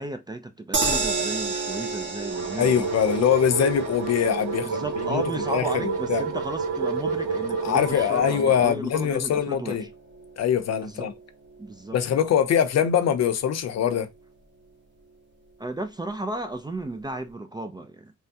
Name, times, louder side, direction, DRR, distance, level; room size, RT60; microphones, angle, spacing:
voice 1, 0.0-2.9 4.6-9.9 10.8-11.1 11.6-12.0 15.6-18.1, right 2 dB, 15° right, 0.4 m, -34 dB
sound 1, 0.7-13.0 13.3-13.4 13.7-13.8, right 4 dB, 35° right, 1.1 m, -33 dB
sound 2, 2.3-8.7, right 5 dB, 70° right, 0.9 m, -30 dB
voice 2, 2.6-5.2 5.5-6.2 7.6-9.8 10.4-11.1 11.9-14.1, left 8 dB, 55° left, 0.6 m, -23 dB
3.5 x 2.1 x 2.6 m
cardioid pair, 115°, 31 cm